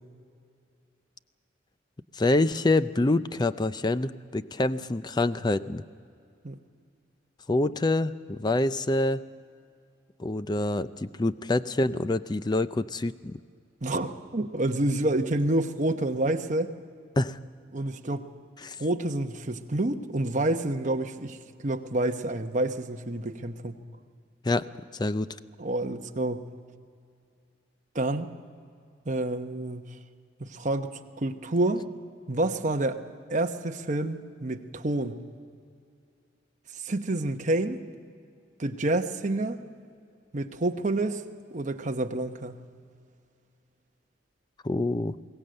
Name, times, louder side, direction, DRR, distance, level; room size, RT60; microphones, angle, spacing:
voice 1, 2.1-5.8 7.5-9.2 10.2-13.3 17.2-17.4 18.6-18.8 24.4-24.7 24.9-25.3 44.6-45.1, left 2 dB, 20° left, 14 dB, 0.5 m, -26 dB
voice 2, 13.8-16.7 17.7-18.3 18.8-21.4 21.6-23.8 25.6-26.5 27.9-28.3 29.1-29.9 30.4-31.9 32.3-33.0 33.3-35.2 36.8-37.8 38.6-39.6 40.3-41.2 41.5-42.6, right 2 dB, 40° right, 6 dB, 1.0 m, -28 dB
22.0 x 17.5 x 7.7 m, 2.4 s
head